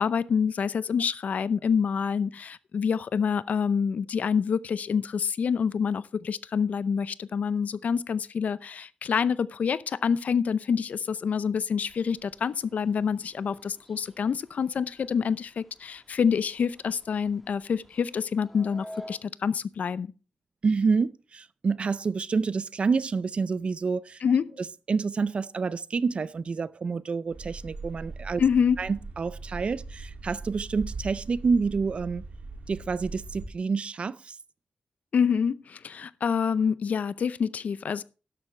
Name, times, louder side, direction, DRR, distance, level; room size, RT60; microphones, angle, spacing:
voice 1, 0.0-20.1 24.2-24.5 28.4-28.8 35.1-38.0, left 6 dB, 65° left, 0.5 m, -27 dB
sound 1, 11.8-19.2, equal, ahead, 1.4 m, -51 dB
voice 2, 20.6-24.2 24.9-28.4 28.8-32.3 32.7-34.4, right 5 dB, 45° right, 0.4 m, -28 dB
sound 2, 27.3-33.5, right 3 dB, 60° right, 2.4 m, -40 dB
12.5 x 11.0 x 3.2 m
wide cardioid pair, 155°, 3 cm